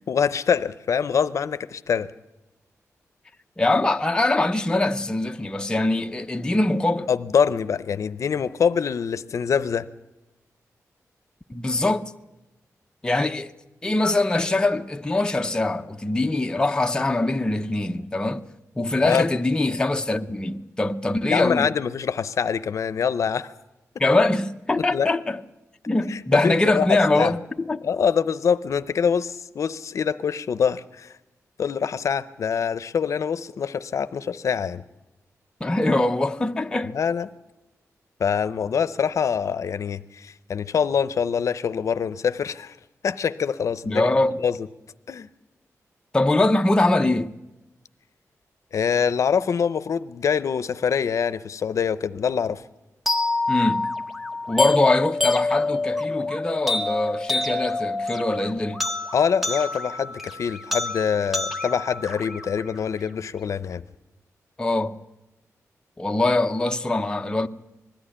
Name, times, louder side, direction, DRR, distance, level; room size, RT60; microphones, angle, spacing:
voice 1, 0.1-2.1 7.1-9.9 19.0-19.2 21.3-23.5 24.7-25.1 26.1-27.4 27.8-31.1 31.6-34.8 36.9-37.3 38.2-42.8 43.0-44.1 44.4-44.7 45.1-45.3 48.7-52.6 59.1-63.8, left 7 dB, 65° left, 0.6 m, -24 dB
voice 2, 3.6-7.1 11.5-12.1 13.0-13.5 13.8-18.4 18.8-21.7 24.0-25.4 25.9-27.8 35.6-36.9 43.9-44.4 46.1-47.3 53.5-53.9 54.5-58.8 64.6-65.0 66.0-67.5, left 2 dB, 15° left, 0.6 m, -23 dB
sound 1, 53.1-63.1, left 3 dB, ahead, 1.2 m, -27 dB
20.5 x 14.0 x 9.9 m
wide cardioid pair, 155°, 6 cm